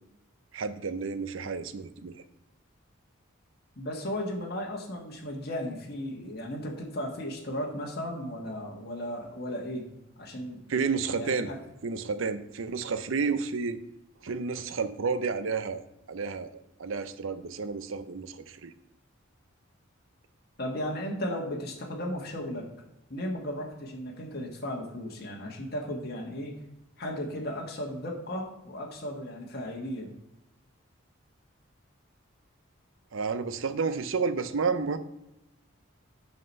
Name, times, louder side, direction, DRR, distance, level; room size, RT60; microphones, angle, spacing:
voice 1, 0.5-2.2 10.7-11.5 11.8-13.8 14.2-18.7 33.1-35.0, right 5 dB, 70° right, 11 dB, 0.6 m, -31 dB
voice 2, 3.8-9.9 10.2-10.6 11.2-11.6 20.6-22.6 23.1-26.6 27.0-30.1, equal, 50° left, -1 dB, 1.5 m, -35 dB
7.7 x 5.8 x 5.3 m, 0.90 s
head